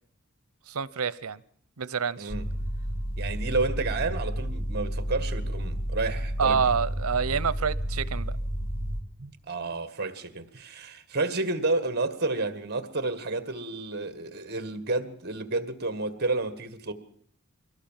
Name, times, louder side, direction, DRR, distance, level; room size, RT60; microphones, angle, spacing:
voice 1, 0.7-1.4 1.8-2.3 6.4-8.3, right 6 dB, 85° right, 0.8 m, -27 dB
sound 1, 2.3-9.0, equal, 75° left, 3.3 m, -31 dB
voice 2, 3.2-6.6 9.2-16.9, right 3 dB, 50° right, 1.7 m, -30 dB
23.0 x 17.5 x 7.4 m
head